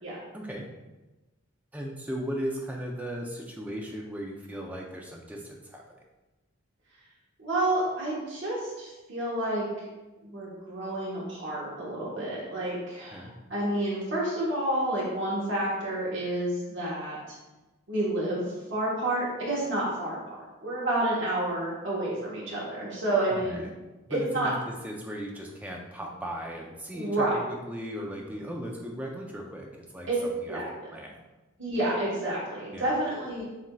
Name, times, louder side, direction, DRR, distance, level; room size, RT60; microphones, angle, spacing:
voice 1, 0.3-0.7 1.7-5.9 13.1-13.3 23.3-23.7 24.1-30.1 30.4-30.6 30.9-31.2 32.7-32.9, equal, 5° right, 0 dB, 0.4 m, -37 dB
voice 2, 7.4-9.7 10.2-17.2 17.9-23.7 24.1-24.5 26.9-27.4 30.1-30.2 30.5-30.7 31.6-33.4, right 1 dB, 55° right, -6 dB, 1.1 m, -29 dB
7.2 x 2.6 x 2.3 m, 1.1 s
head